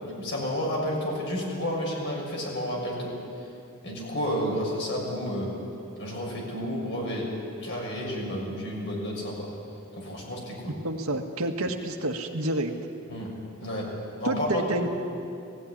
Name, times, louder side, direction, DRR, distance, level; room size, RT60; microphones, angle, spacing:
voice 1, 0.0-3.1 3.8-5.5 6.0-7.3 7.6-9.5 10.0-10.7 13.1-13.3 13.6-13.9 14.2-14.9, equal, 55° left, -2 dB, 6.3 m, -31 dB
voice 2, 10.8-12.7 14.2-14.9, right 1 dB, 80° right, 4 dB, 1.6 m, -29 dB
18.0 x 16.0 x 9.9 m, 2.5 s
head